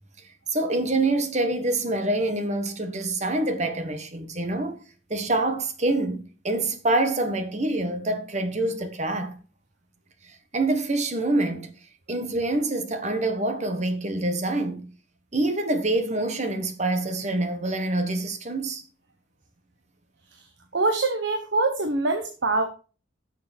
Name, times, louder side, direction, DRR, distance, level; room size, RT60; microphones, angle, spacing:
voice 1, 0.5-4.8 5.1-9.4 10.2-11.7 12.1-14.9 15.3-18.8, right 2 dB, 40° right, 1.4 m, -26 dB
voice 2, 20.7-22.6, right 3 dB, 80° right, 1.2 m, -24 dB
10.5 x 6.6 x 4.5 m
head